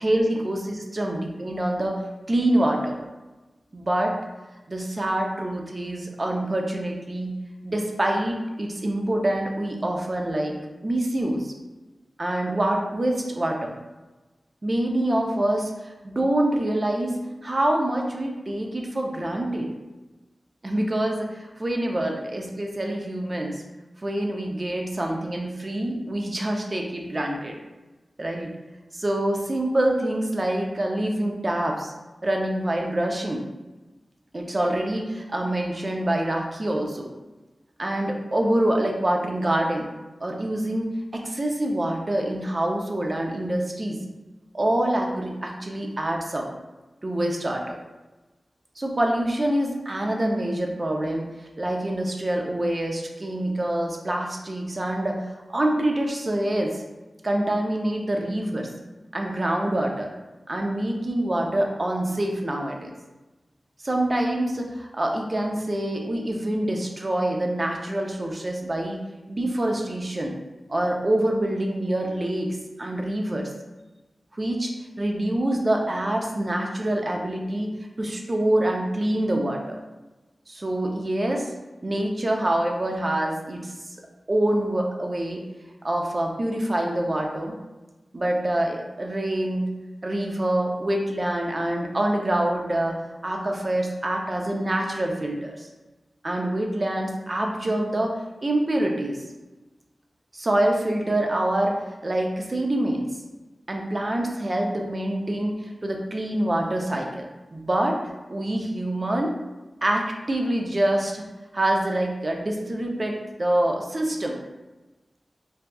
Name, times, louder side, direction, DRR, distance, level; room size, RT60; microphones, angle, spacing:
voice 1, 0.0-2.0 2.3-3.0 3.7-4.2 4.7-7.4 7.6-11.5 12.2-13.8 14.6-19.7 20.6-23.6 24.0-27.5 28.2-28.5 28.9-31.9 32.2-33.4 34.3-37.1 37.8-39.9 40.2-44.0 44.5-46.5 47.0-47.7 48.8-51.2 51.6-55.2 55.5-56.8 57.2-58.7 59.1-60.1 60.5-62.9 63.8-69.0 69.3-70.4 70.7-73.5 74.3-74.7 75.0-77.7 78.0-79.8 80.5-81.5 81.8-83.7 84.3-85.4 85.8-87.5 88.1-89.7 90.0-95.7 96.2-99.2 100.3-103.1 103.7-108.0 108.3-109.3 109.8-111.2 111.5-114.4, right 1 dB, 45° right, 1 dB, 0.5 m, -26 dB
4.0 x 2.3 x 2.3 m, 1.1 s
cardioid pair, 45°, 0 cm